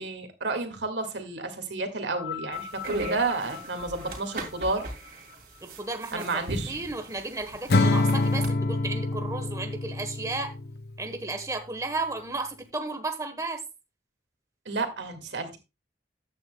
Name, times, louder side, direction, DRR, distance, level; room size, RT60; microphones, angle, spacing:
voice 1, 0.0-4.9 6.1-6.7 14.7-15.6, right 3 dB, 90° right, 2.0 m, -31 dB
sound 1, 2.2-6.6 7.5-7.6, left 9 dB, 35° left, 1.8 m, -42 dB
sound 2, 2.5-8.5, right 1 dB, 55° right, 2.6 m, -38 dB
voice 2, 5.6-10.5 11.0-13.6, right 3 dB, 20° right, 1.1 m, -34 dB
Acoustic guitar / Strum, 7.7-11.0, left 2 dB, 60° left, 0.6 m, -26 dB
13.5 x 9.1 x 2.2 m
head